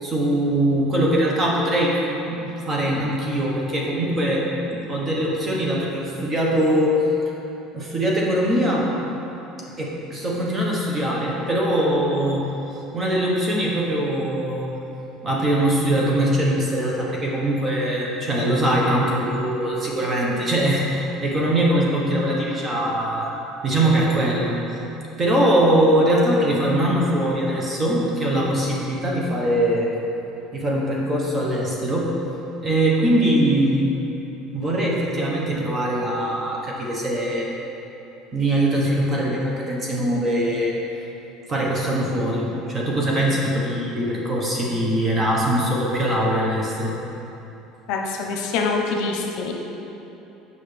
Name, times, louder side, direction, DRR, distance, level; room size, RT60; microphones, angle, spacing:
voice 1, 0.0-1.9 2.3-2.4 2.7-7.1 7.7-8.9 9.8-12.5 12.9-14.7 15.2-23.3 23.6-24.5 25.2-29.9 30.5-32.1 32.6-33.9 34.5-37.5 38.3-40.7 41.5-46.9, right 1 dB, 25° right, -3 dB, 1.1 m, -22 dB
voice 2, 47.9-49.5, left 4 dB, 70° left, 1 dB, 0.7 m, -25 dB
7.8 x 5.4 x 3.4 m, 3.0 s
cardioid pair, 145°, 0 cm